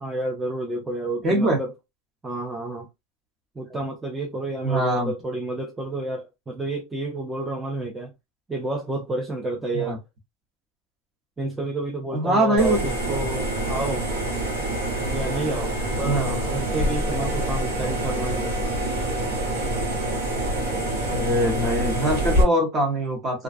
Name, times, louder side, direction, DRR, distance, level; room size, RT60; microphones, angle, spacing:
voice 1, 0.0-1.7 2.2-2.9 3.6-8.1 8.5-10.0 11.4-14.1 15.1-18.5, right 2 dB, 10° right, 0.4 m, -30 dB
voice 2, 1.2-1.6 4.6-5.1 9.7-10.0 12.1-12.8 16.0-16.4 21.0-23.4, right 1 dB, 25° right, 0.8 m, -23 dB
sound 1, 12.6-22.4, right 1 dB, 70° right, 1.2 m, -26 dB
2.5 x 2.2 x 2.4 m
supercardioid pair, 150°, 0 cm